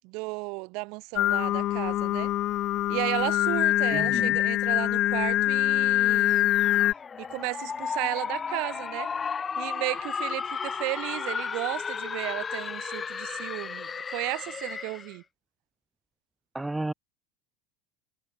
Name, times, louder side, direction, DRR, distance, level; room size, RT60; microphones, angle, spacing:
voice 1, 0.0-2.3 2.9-6.5 7.2-9.1 9.6-15.2, right 29 dB, 55° right, 1.2 m, -34 dB
Singing, 1.2-6.9, left 14 dB, 40° left, 0.7 m, -24 dB
voice 2, 3.9-4.4 16.5-16.9, right 2 dB, 5° right, 0.5 m, -32 dB
sound 1, 6.3-15.2, left 6 dB, 20° left, 1.7 m, -34 dB
supercardioid pair, 155°, 0 cm